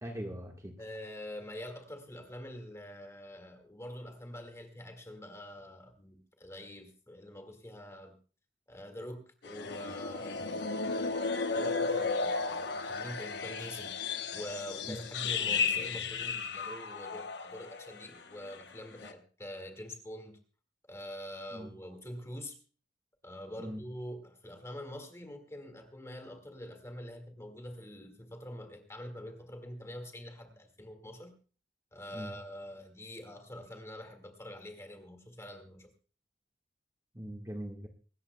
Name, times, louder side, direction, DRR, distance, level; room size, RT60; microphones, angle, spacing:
voice 1, 0.0-0.8 14.8-15.0 21.5-21.7 23.6-23.8 32.1-32.3 37.1-37.9, equal, 20° right, 2 dB, 1.5 m, -41 dB
voice 2, 0.8-8.2 8.7-10.7 11.0-14.0 14.3-20.4 20.9-22.6 23.2-31.3 31.9-35.9, left 1 dB, 15° left, 5 dB, 2.0 m, -45 dB
sound 1, 9.4-18.0 18.3-18.6 19.0-19.1, left 4 dB, 65° left, 1.0 m, -34 dB
25.0 x 13.0 x 2.3 m, 0.37 s
head